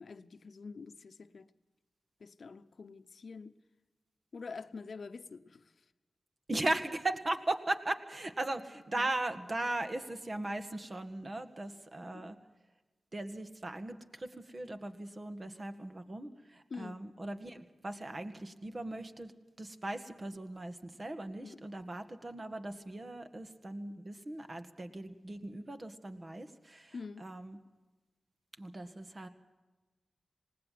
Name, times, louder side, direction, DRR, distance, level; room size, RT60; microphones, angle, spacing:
voice 1, 0.0-1.5 2.2-3.6 4.3-5.7 8.9-9.1 12.0-12.3 16.7-17.0 21.4-21.6 26.9-27.2, left 4 dB, 70° left, 0.9 m, -46 dB
voice 2, 6.5-12.4 13.1-19.3 19.6-27.6 28.6-29.3, right 2 dB, 45° right, 2.0 m, -38 dB
20.0 x 18.0 x 7.7 m
cardioid pair, 40°, 0 cm